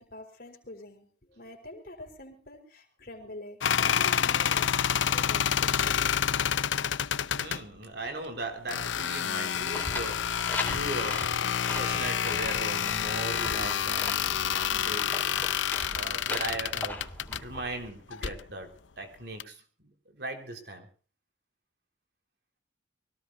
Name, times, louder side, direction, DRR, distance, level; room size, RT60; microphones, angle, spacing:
voice 1, 0.0-6.4, left 1 dB, 50° left, 4 dB, 4.4 m, -46 dB
sound 1, 3.6-7.6 8.7-17.4 18.1-18.4 19.4-19.5, left 8 dB, 80° left, 0.6 m, -28 dB
voice 2, 7.3-11.4 11.7-14.3 14.6-15.3 15.6-17.0 17.3-20.9, right 2 dB, 60° right, 4 dB, 4.1 m, -38 dB
sound 2, 9.5-17.9, left 2 dB, 10° left, 4.2 m, -39 dB
24.0 x 18.0 x 2.6 m, 0.37 s
head